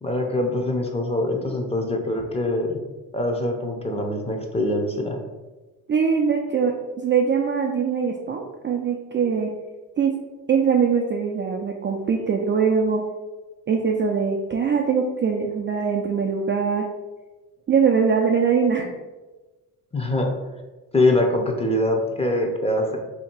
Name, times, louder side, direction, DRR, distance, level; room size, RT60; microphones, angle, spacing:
voice 1, 0.0-2.8 3.1-5.2 19.9-20.3 20.9-23.0, left 1 dB, 15° left, 1 dB, 0.7 m, -23 dB
voice 2, 5.9-9.5 10.0-10.1 10.5-13.0 13.7-16.8 17.7-18.9, right 6 dB, 30° right, 1 dB, 0.4 m, -22 dB
2.8 x 2.8 x 4.4 m, 1.2 s
supercardioid pair, 75°, 43 cm